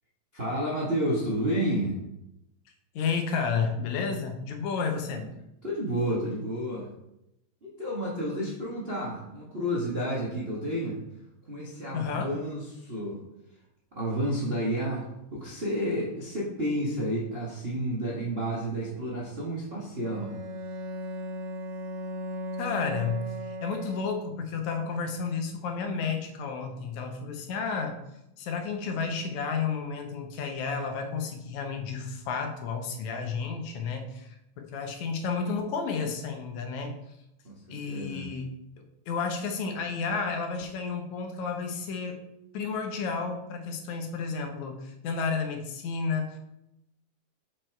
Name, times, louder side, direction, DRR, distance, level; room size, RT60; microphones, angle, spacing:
voice 1, 0.3-1.9 5.2-5.3 5.6-6.9 7.6-11.0 11.5-13.2 13.9-15.0 15.3-20.3 37.4-38.3, equal, 40° right, -5 dB, 0.8 m, -30 dB
voice 2, 3.0-5.3 11.9-12.3 22.6-23.2 23.5-28.0 28.4-37.0 37.7-38.5 39.1-42.3 42.5-46.4, left 5 dB, 75° left, 4 dB, 2.3 m, -31 dB
Bowed string instrument, 20.0-24.5, equal, 70° right, 1.8 m, -37 dB
6.5 x 5.6 x 4.5 m, 0.86 s
omnidirectional pair, 3.3 m